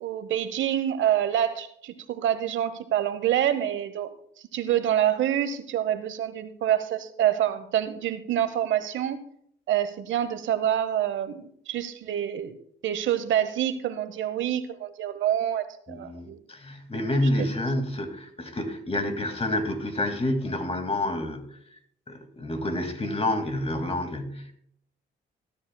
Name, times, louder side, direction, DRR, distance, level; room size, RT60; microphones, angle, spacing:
voice 1, 0.0-4.1 4.5-9.2 9.7-12.5 12.8-16.4 17.4-17.5, right 11 dB, 75° right, 12 dB, 0.9 m, -26 dB
voice 2, 15.9-21.8 22.1-24.5, left 1 dB, 30° left, 6 dB, 2.1 m, -29 dB
20.0 x 11.0 x 2.2 m, 0.68 s
cardioid pair, 90°, 20 cm